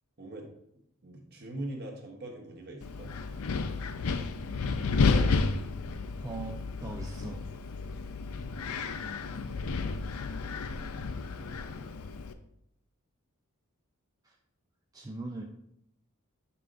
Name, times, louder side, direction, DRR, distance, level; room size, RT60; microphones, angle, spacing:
voice 1, 0.7-3.1 10.0-10.4 11.1-11.8, right 1 dB, 50° right, 2 dB, 1.1 m, -43 dB
Wind, 2.8-12.3, left 4 dB, 80° left, 0.5 m, -31 dB
voice 2, 6.2-7.6 14.2-14.3 14.9-15.4, right 2 dB, 15° right, 1 dB, 0.4 m, -41 dB
7.8 x 5.5 x 2.5 m, 0.78 s
head